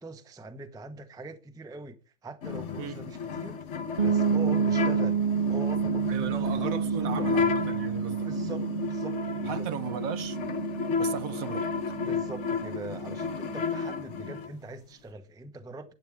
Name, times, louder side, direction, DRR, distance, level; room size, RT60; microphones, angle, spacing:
voice 1, 0.0-3.6 4.0-5.2 5.5-7.4 8.2-9.7 12.0-15.9, right 2 dB, 5° right, 0.6 m, -42 dB
sound 1, 2.4-14.5, left 6 dB, 50° left, 1.1 m, -32 dB
sound 2, 4.0-13.7, right 7 dB, 45° right, 0.6 m, -30 dB
voice 2, 6.1-8.3 9.5-10.4 11.0-11.7, right 8 dB, 65° right, 1.1 m, -36 dB
11.5 x 8.9 x 3.5 m
omnidirectional pair, 1.6 m